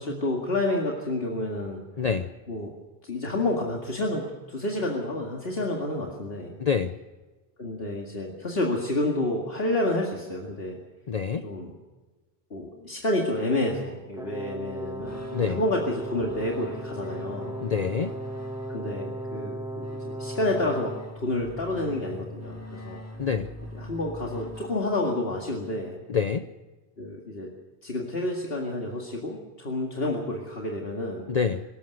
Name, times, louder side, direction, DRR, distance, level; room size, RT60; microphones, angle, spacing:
voice 1, 0.0-1.8 2.5-2.7 3.0-6.6 7.6-10.8 11.4-11.7 12.5-17.6 18.7-23.0 23.7-26.0 27.0-27.5 27.8-31.3, left 1 dB, 70° left, 0 dB, 2.4 m, -29 dB
voice 2, 2.0-2.3 6.6-6.9 11.1-11.4 15.3-15.6 17.6-18.1 23.2-23.5 26.1-26.4 31.3-31.6, left 6 dB, 45° left, 9 dB, 0.8 m, -26 dB
Brass instrument, 14.1-21.0, right 1 dB, 5° right, 1.6 m, -37 dB
sound 1, 15.0-25.2, left 1 dB, 15° left, 2.0 m, -41 dB
24.0 x 14.0 x 8.1 m, 1.2 s
omnidirectional pair, 1.1 m